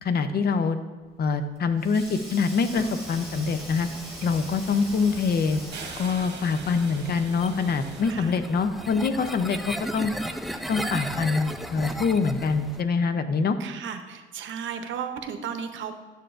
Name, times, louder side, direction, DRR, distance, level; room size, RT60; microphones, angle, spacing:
voice 1, 0.0-0.8 1.2-3.9 4.2-5.6 6.0-10.1 10.7-13.6, left 5 dB, 55° left, 10 dB, 0.6 m, -25 dB
Sink (filling or washing), 1.1-6.3, equal, 30° left, 1.8 m, -43 dB
sound 1, 2.6-3.2 3.6-8.0, right 5 dB, 60° right, 1.2 m, -43 dB
sound 2, 3.0-12.8, equal, ahead, 0.4 m, -37 dB
voice 2, 13.6-16.0, right 7 dB, 75° right, 8 dB, 0.7 m, -34 dB
10.5 x 6.8 x 2.5 m, 1.4 s
cardioid pair, 90°, 20 cm